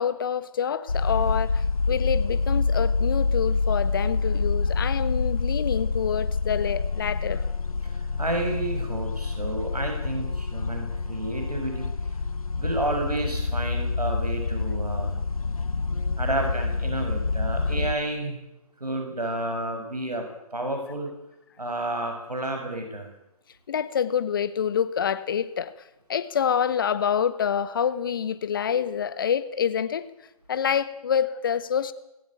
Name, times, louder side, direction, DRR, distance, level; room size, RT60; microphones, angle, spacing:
voice 1, 0.0-7.5 17.7-17.8 23.7-25.7 26.1-30.1 30.5-31.9, left 8 dB, 35° left, 1.2 m, -27 dB
sound 1, 0.9-17.9, left 4 dB, 65° left, 1.5 m, -27 dB
voice 2, 7.8-11.9 12.5-15.2 16.2-18.4 18.8-20.2 20.5-21.1 21.6-23.1, right 2 dB, 80° right, 6.2 m, -30 dB
20.5 x 16.5 x 9.0 m
figure-of-eight pair, 150°, 20 cm